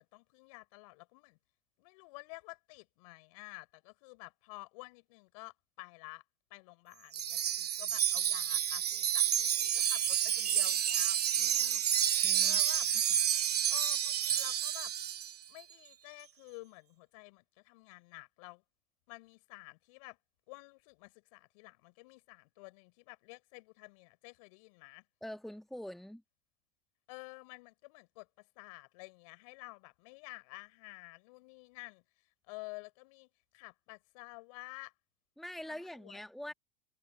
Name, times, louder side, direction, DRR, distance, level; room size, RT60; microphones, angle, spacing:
voice 1, 0.0-1.4 1.8-6.2 6.5-12.9 13.7-14.9 15.5-18.6 19.1-20.2 20.5-25.0 27.1-32.0 32.5-33.3 33.5-34.9 35.7-36.2, left 27 dB, 60° left, 4.8 m, -51 dB
Wind chime, 7.1-15.3, right 10 dB, 85° right, 0.6 m, -30 dB
voice 2, 12.2-12.6 25.2-26.2 35.4-36.5, left 1 dB, ahead, 1.5 m, -44 dB
hypercardioid pair, 85°, 20 cm